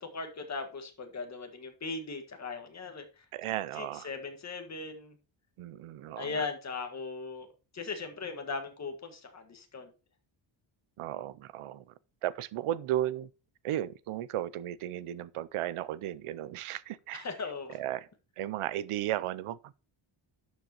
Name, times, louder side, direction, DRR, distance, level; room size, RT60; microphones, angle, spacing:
voice 1, 0.0-3.3 3.7-5.2 6.2-7.5 7.7-9.9 17.1-17.8, left 4 dB, 35° left, 1.7 m, -38 dB
voice 2, 3.3-4.1 5.6-6.4 11.0-11.8 12.2-13.3 13.6-17.3 17.7-18.0 18.4-19.7, right 13 dB, 85° right, 0.7 m, -35 dB
11.5 x 7.4 x 3.0 m
wide cardioid pair, 160°, 49 cm